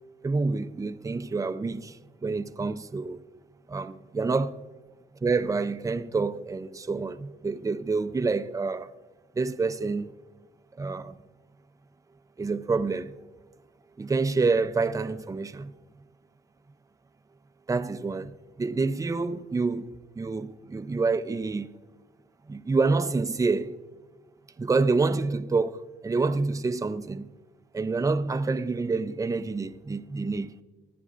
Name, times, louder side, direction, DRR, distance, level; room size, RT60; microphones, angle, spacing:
voice 1, 0.2-3.2 3.7-4.6 5.2-8.9 9.4-10.1 10.7-11.2 12.4-13.2 14.0-15.7 17.7-21.7 22.5-23.7 24.6-27.3 27.7-30.6, right 4 dB, 15° right, 0.5 m, -27 dB
24.5 x 10.0 x 2.5 m
cardioid pair, 90°, 20 cm